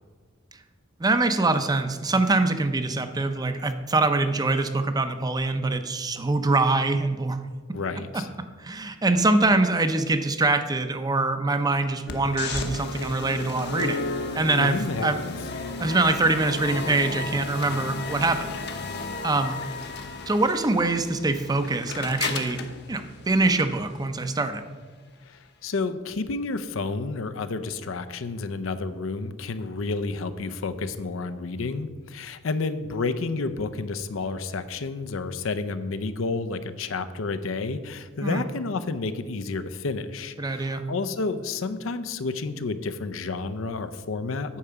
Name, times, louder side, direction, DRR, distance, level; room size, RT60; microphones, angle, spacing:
voice 1, 1.0-7.4 8.6-14.1 14.3-15.2 15.8-18.5 19.2-19.6 20.3-22.6 22.9-24.6 38.2-38.4 40.4-40.9, right 2 dB, 20° right, 9 dB, 0.5 m, -24 dB
voice 2, 7.7-8.3 14.6-15.4 25.2-44.6, left 3 dB, 75° left, 11 dB, 0.6 m, -30 dB
sound 1, 12.1-24.1, left 3 dB, 55° left, 0.9 m, -34 dB
8.5 x 4.8 x 6.8 m, 1.4 s
head